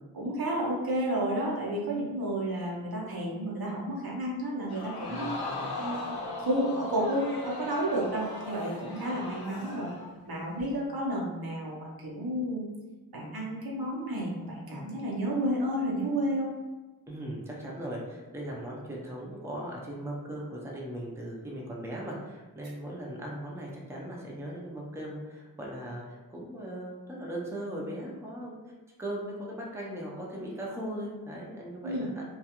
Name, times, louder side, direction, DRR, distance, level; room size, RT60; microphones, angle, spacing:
voice 1, 0.1-5.3 5.8-6.1 6.4-9.9 10.3-12.7 13.1-16.5 31.8-32.1, right 1 dB, 75° right, -5 dB, 0.8 m, -31 dB
Crowd, 4.7-10.2 10.6-10.7, left 2 dB, 80° left, 0.6 m, -38 dB
voice 2, 5.0-5.8 14.7-14.9 17.1-28.7 29.0-32.2, right 1 dB, 5° right, -3 dB, 0.5 m, -39 dB
2.4 x 2.3 x 2.9 m, 1.2 s
wide cardioid pair, 60°, 37 cm